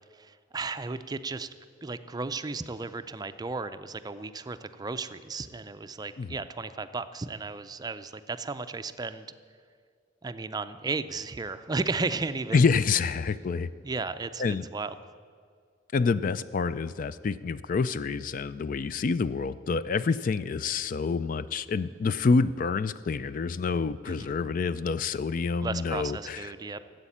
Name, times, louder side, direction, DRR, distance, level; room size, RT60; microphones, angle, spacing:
voice 1, 0.1-1.5 1.8-9.3 10.2-12.6 13.8-14.9 24.1-24.3 25.6-26.8, right 3 dB, 20° right, 11 dB, 0.4 m, -34 dB
voice 2, 12.5-13.7 14.4-14.7 15.9-26.5, left 4 dB, 45° left, 15 dB, 0.4 m, -27 dB
14.0 x 8.1 x 8.5 m, 2.1 s
head